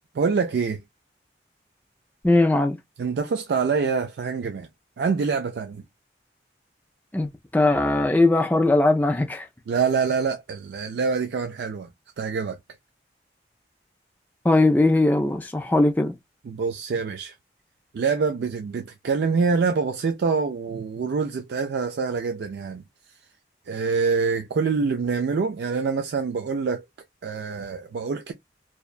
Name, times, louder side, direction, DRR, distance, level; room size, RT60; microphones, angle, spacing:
voice 1, 0.1-0.8 3.0-4.7 5.0-5.8 9.7-11.9 12.2-12.6 16.5-17.3 17.9-22.8 23.7-26.8 27.2-28.3, right 5 dB, 70° right, 0.3 m, -25 dB
voice 2, 2.2-2.8 7.1-9.5 14.4-16.1, left 2 dB, 10° left, 0.3 m, -20 dB
2.7 x 2.1 x 2.3 m
head